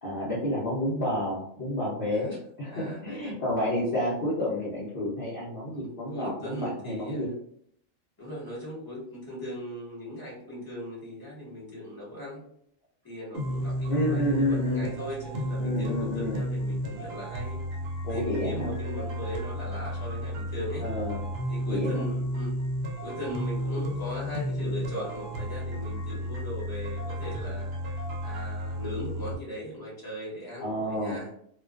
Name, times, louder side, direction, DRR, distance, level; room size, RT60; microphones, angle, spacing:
voice 1, 0.0-7.3 13.9-14.9 15.6-16.4 18.0-18.7 20.8-21.2 21.7-22.0 30.6-31.2, left 1 dB, 50° left, -8 dB, 0.8 m, -30 dB
voice 2, 2.7-3.4 5.7-5.8 6.1-7.3 8.2-12.4 13.0-17.6 18.1-20.9 21.5-22.5 23.0-27.7 28.2-31.3, left 1 dB, 20° left, -6 dB, 0.9 m, -38 dB
sound 1, 13.3-29.4, equal, 60° right, 0.7 m, -32 dB
2.4 x 2.2 x 2.3 m, 0.69 s
omnidirectional pair, 1.4 m